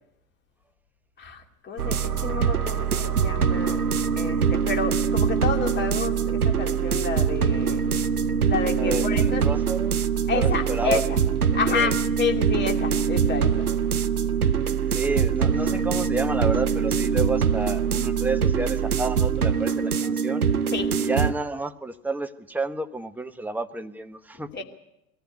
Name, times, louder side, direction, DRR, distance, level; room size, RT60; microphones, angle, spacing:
voice 1, 1.2-3.8 4.1-7.8 8.5-9.4 10.3-11.2 11.5-13.7 20.7-20.9 24.5-24.6, left 5 dB, 25° left, 4 dB, 2.7 m, -29 dB
sound 1, 1.8-21.3, right 7 dB, 85° right, 0.8 m, -23 dB
voice 2, 8.8-10.0 10.3-11.0 11.7-11.9 14.9-20.4 20.9-24.5, right 2 dB, 5° right, 7 dB, 0.9 m, -30 dB
22.5 x 15.0 x 9.7 m, 0.83 s
figure-of-eight pair, 90°, 43 cm